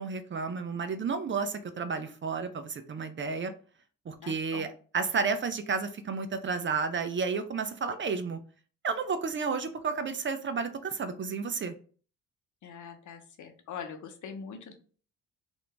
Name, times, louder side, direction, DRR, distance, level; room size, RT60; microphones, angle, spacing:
voice 1, 0.0-3.5 4.1-4.7 4.9-8.4 8.8-11.7, right 5 dB, 35° right, 9 dB, 0.5 m, -31 dB
voice 2, 4.2-4.7 12.6-14.7, left 6 dB, 55° left, 6 dB, 0.8 m, -43 dB
2.8 x 2.6 x 3.2 m, 0.42 s
supercardioid pair, 55°, 35 cm